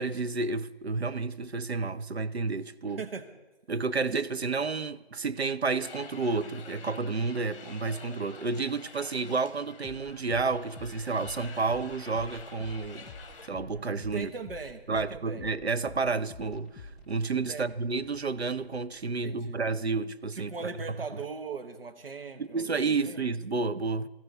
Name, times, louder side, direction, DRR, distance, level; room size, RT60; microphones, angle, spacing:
voice 1, 0.0-3.0 3.7-13.1 13.5-14.3 14.9-20.5 22.4-24.1, right 4 dB, 90° right, 0.8 m, -30 dB
voice 2, 2.8-3.3 14.1-15.4 17.5-17.7 19.1-19.6 20.3-23.2, right 5 dB, 65° right, 1.2 m, -39 dB
sound 1, 5.8-13.5, left 5 dB, 30° left, 1.8 m, -48 dB
sound 2, 9.8-19.5, left 2 dB, ahead, 0.4 m, -49 dB
19.0 x 14.5 x 3.4 m
figure-of-eight pair, 155°, 31 cm